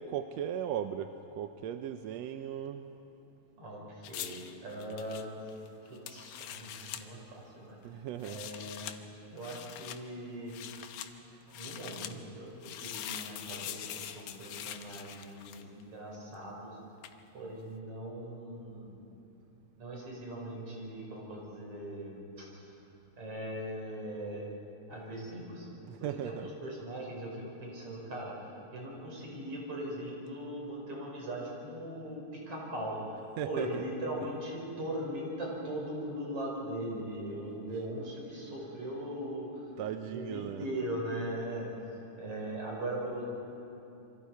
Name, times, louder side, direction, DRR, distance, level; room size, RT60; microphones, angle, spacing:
voice 1, 0.0-2.9 7.8-8.4 10.7-11.7 12.0-12.1 25.9-26.5 33.4-33.8 39.8-40.7, right 9 dB, 75° right, 8 dB, 1.7 m, -38 dB
voice 2, 3.6-5.4 5.8-7.8 8.2-8.9 9.3-10.6 11.5-16.8 17.3-18.9 19.8-22.7 23.2-24.6 24.9-25.7 26.0-28.4 28.7-39.6 40.1-41.7 42.2-43.2, right 1 dB, 50° right, -3 dB, 6.2 m, -40 dB
sound 1, 4.0-7.0 8.1-9.0 9.4-10.0 10.5-11.1 11.5-12.1 12.6-15.8 17.0-17.2, left 10 dB, 80° left, 2.3 m, -43 dB
27.5 x 24.0 x 4.7 m, 2.9 s
omnidirectional pair, 3.4 m